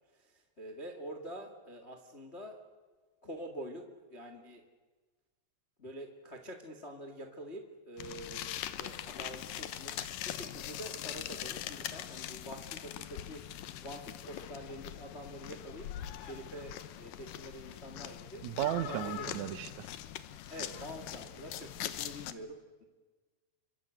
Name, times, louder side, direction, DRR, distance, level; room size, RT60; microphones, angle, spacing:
voice 1, 0.1-2.6 3.2-4.6 5.8-8.5 8.8-19.3 20.5-22.8, equal, 55° left, 5 dB, 0.7 m, -46 dB
sound 1, 8.0-22.3, left 12 dB, 70° left, 2.2 m, -42 dB
voice 2, 18.4-19.9, right 12 dB, 70° right, 11 dB, 1.8 m, -35 dB
27.0 x 24.5 x 8.0 m, 1.3 s
omnidirectional pair, 4.9 m